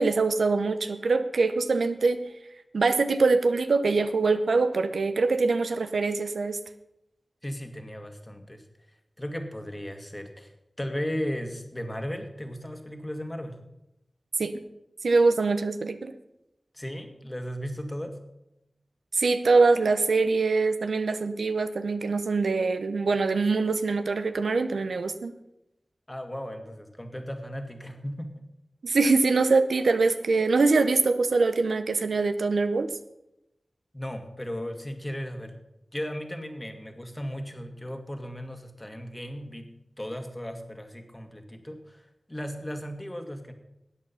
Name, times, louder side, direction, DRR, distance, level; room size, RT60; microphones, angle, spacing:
voice 1, 0.0-2.2 2.7-6.6 14.4-14.5 15.0-16.1 19.1-25.3 28.8-32.9, right 3 dB, 90° right, 9 dB, 0.7 m, -23 dB
voice 2, 7.4-8.6 9.2-10.5 10.8-13.6 16.7-18.2 26.1-28.5 33.9-35.6 35.9-43.5, equal, 20° left, 6 dB, 1.9 m, -36 dB
13.0 x 8.4 x 5.6 m, 0.87 s
cardioid pair, 45°, 0 cm